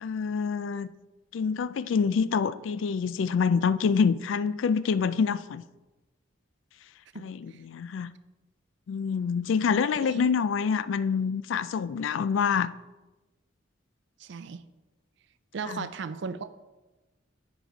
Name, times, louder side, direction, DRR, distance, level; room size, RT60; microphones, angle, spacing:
voice 1, 0.0-0.9 1.3-5.6 7.2-8.1 8.9-12.7 15.7-15.9, left 6 dB, 75° left, 16 dB, 0.3 m, -26 dB
voice 2, 14.2-14.6 15.5-16.5, right 5 dB, 65° right, 13 dB, 0.4 m, -36 dB
9.1 x 4.1 x 4.8 m, 1.1 s
head